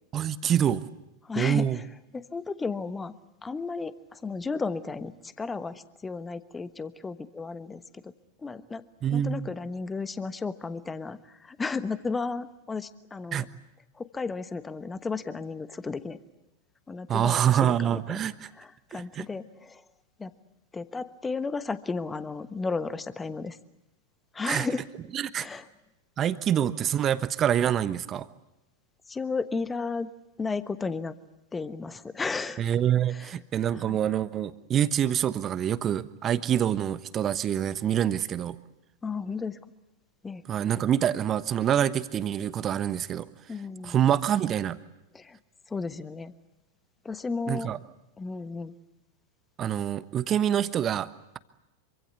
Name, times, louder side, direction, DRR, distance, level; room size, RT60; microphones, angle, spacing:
voice 1, 0.1-0.8 1.4-1.8 9.0-9.5 13.3-13.5 17.1-18.5 18.9-19.3 24.4-24.7 25.1-25.5 26.2-28.3 32.6-38.6 40.5-43.3 43.8-44.8 47.5-47.8 49.6-51.1, right 10 dB, 30° right, 14 dB, 1.2 m, -26 dB
voice 2, 1.2-1.6 2.1-3.1 3.4-8.1 8.4-8.8 9.1-13.4 14.0-16.2 16.9-18.2 18.6-19.8 20.2-20.3 20.7-23.6 24.3-24.8 25.4-25.7 29.1-30.1 30.4-31.1 31.5-32.6 33.1-33.3 33.9-34.0 39.0-39.6 40.2-40.4 43.5-44.0 45.1-45.4 45.7-46.3 47.0-47.7 48.2-48.7, left 4 dB, 15° left, 13 dB, 1.2 m, -33 dB
26.5 x 25.0 x 8.1 m, 0.91 s
figure-of-eight pair, 90°, 0 cm